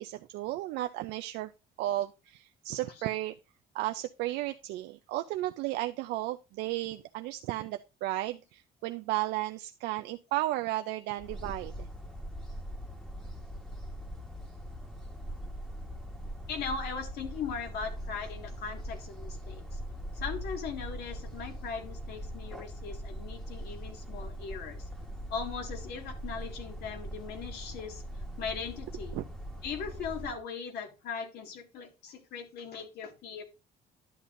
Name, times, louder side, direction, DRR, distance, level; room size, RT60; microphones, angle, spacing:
voice 1, 0.0-1.5 1.8-3.4 3.7-11.9 29.1-29.2, right 16 dB, 90° right, 0.4 m, -34 dB
sound 1, 11.2-30.4, equal, 5° left, 1.3 m, -41 dB
voice 2, 16.5-19.8 20.1-24.9 25.3-28.0 28.4-29.2 29.6-33.4, left 5 dB, 75° left, 1.9 m, -39 dB
11.0 x 8.0 x 2.5 m
cardioid pair, 110°, 17 cm